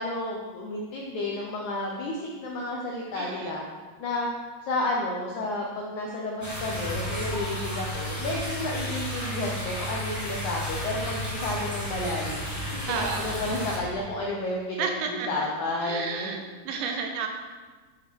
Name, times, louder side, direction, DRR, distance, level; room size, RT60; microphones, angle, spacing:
voice 1, 0.0-3.6 4.0-4.3 4.7-16.3, left 2 dB, 80° left, -1 dB, 1.7 m, -31 dB
voice 2, 3.1-3.5 12.9-13.3 14.8-15.3 15.8-17.3, right 5 dB, 90° right, 4 dB, 3.4 m, -32 dB
sound 1, 6.4-13.8, equal, 10° left, 1.2 m, -32 dB
10.5 x 8.6 x 4.6 m, 1.4 s
omnidirectional pair, 4.9 m